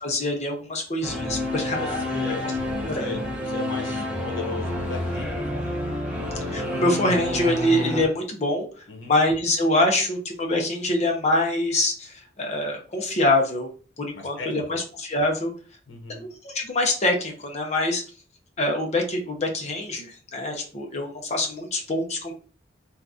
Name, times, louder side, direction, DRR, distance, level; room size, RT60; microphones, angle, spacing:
voice 1, 0.0-2.1 2.4-2.5 2.8-3.1 6.5-8.7 9.1-13.7 14.0-15.5 16.1-18.0 18.6-22.3, left 1 dB, 40° left, 2 dB, 0.7 m, -25 dB
Singing / Musical instrument, 1.0-8.0, left 1 dB, 5° right, 0.8 m, -29 dB
voice 2, 1.7-2.4 2.9-3.2 3.4-5.8 8.9-9.1 14.1-14.5 15.9-16.2, left 3 dB, 90° left, 2 dB, 0.8 m, -36 dB
2.8 x 2.5 x 3.5 m, 0.38 s
head